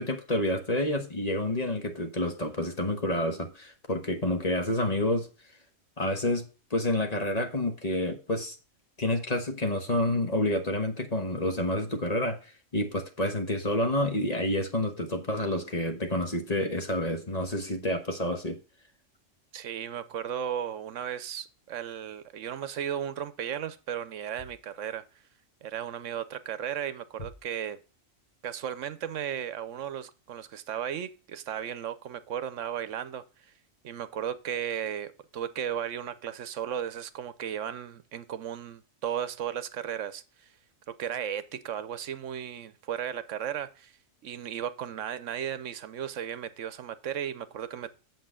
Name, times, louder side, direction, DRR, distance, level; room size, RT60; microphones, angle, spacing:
voice 1, 0.0-5.3 6.0-8.5 9.0-18.6, left 1 dB, 30° left, 1.2 m, -29 dB
voice 2, 19.5-25.2 25.6-27.8 28.4-33.5 33.8-40.5 40.9-43.9 44.2-47.9, right 9 dB, 75° right, 1.0 m, -35 dB
8.0 x 7.3 x 3.7 m
omnidirectional pair, 1.3 m